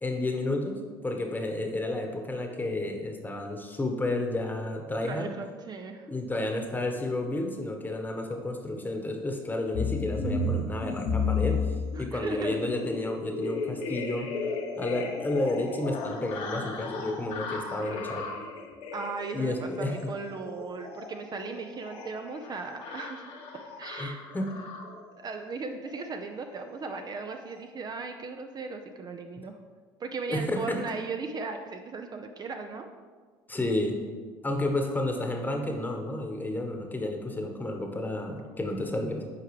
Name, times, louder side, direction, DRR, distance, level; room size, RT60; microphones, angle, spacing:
voice 1, 0.0-5.3 6.1-14.3 14.8-18.2 19.3-20.0 24.0-24.5 30.3-30.8 33.5-34.0 34.4-39.2, left 2 dB, 15° left, 3 dB, 1.1 m, -31 dB
voice 2, 5.0-6.1 12.0-12.6 18.9-23.2 23.8-24.2 25.2-29.6 30.0-32.9, right 4 dB, 35° right, 5 dB, 0.5 m, -37 dB
sound 1, 9.7-25.1 25.8-26.1 26.4-26.6 26.9-27.1 27.3-27.6, left 3 dB, 65° left, 1.1 m, -34 dB
8.3 x 4.6 x 3.2 m, 1.5 s
hypercardioid pair, 70°, 12 cm